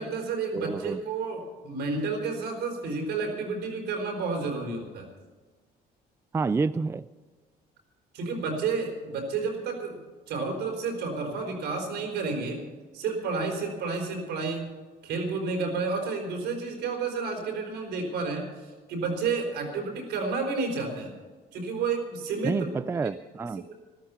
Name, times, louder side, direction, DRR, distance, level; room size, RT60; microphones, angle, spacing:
voice 1, 0.0-5.1 8.1-10.0 10.3-12.6 12.9-14.8 15.0-21.1 21.5-22.7 23.0-23.1 23.7-23.8, right 4 dB, 80° right, 2 dB, 4.6 m, -31 dB
voice 2, 0.5-1.0 6.3-7.1 22.4-23.7, right 4 dB, 15° right, 15 dB, 0.3 m, -28 dB
13.5 x 13.0 x 7.0 m, 1.4 s
cardioid pair, 110°, 17 cm